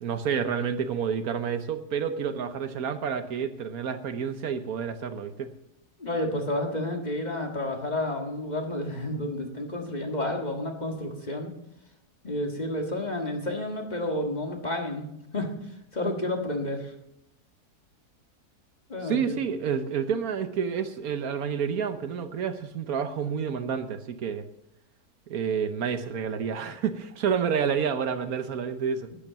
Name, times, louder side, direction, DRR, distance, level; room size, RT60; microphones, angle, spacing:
voice 1, 0.0-5.5 19.0-24.4 25.3-29.1, right 7 dB, 70° right, 10 dB, 1.3 m, -29 dB
voice 2, 6.0-11.5 12.2-15.1 15.3-15.6 15.9-16.9 18.9-19.4, left 1 dB, 30° left, 3 dB, 1.7 m, -30 dB
11.5 x 9.9 x 6.9 m, 0.80 s
omnidirectional pair, 1.6 m